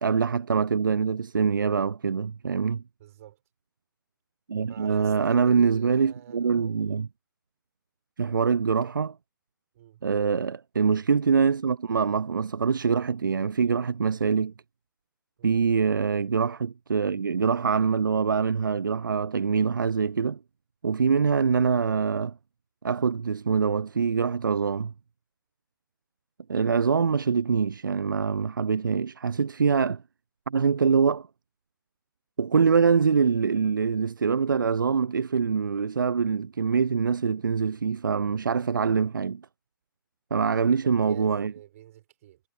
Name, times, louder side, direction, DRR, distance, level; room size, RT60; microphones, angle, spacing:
voice 1, 0.0-2.8 4.5-7.1 8.2-9.2 10.0-14.5 15.4-20.4 20.8-22.3 22.8-24.9 26.5-30.0 30.5-31.3 32.4-39.4 40.3-41.5, right 6 dB, 65° right, 0.8 m, -24 dB
voice 2, 3.0-3.4 4.7-6.9 9.7-10.0 15.4-15.6 40.4-42.4, right 13 dB, 40° right, 6.1 m, -48 dB
figure-of-eight pair, 125°, 11 cm